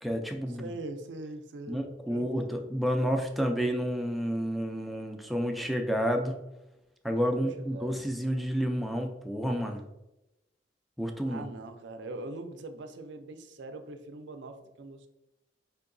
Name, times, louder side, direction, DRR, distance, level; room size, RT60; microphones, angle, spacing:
voice 1, 0.0-0.7 1.7-6.4 7.0-9.8 11.0-11.5, equal, ahead, 3 dB, 0.3 m, -30 dB
voice 2, 0.5-1.8 2.1-2.5 7.3-8.0 11.3-15.1, right 2 dB, 75° right, 8 dB, 0.4 m, -42 dB
4.5 x 2.8 x 2.5 m, 0.94 s
head